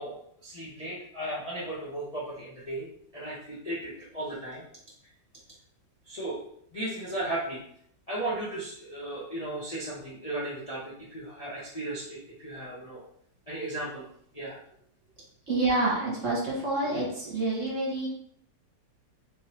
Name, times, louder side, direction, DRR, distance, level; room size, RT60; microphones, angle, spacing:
voice 1, 0.0-2.9 3.1-4.7 6.0-6.4 6.7-7.6 8.1-13.0 13.5-14.0 14.3-14.6, right 1 dB, 30° left, -7 dB, 0.7 m, -35 dB
voice 2, 15.5-18.1, right 2 dB, 50° right, -4 dB, 1.4 m, -28 dB
3.6 x 2.8 x 4.3 m, 0.68 s
omnidirectional pair, 1.9 m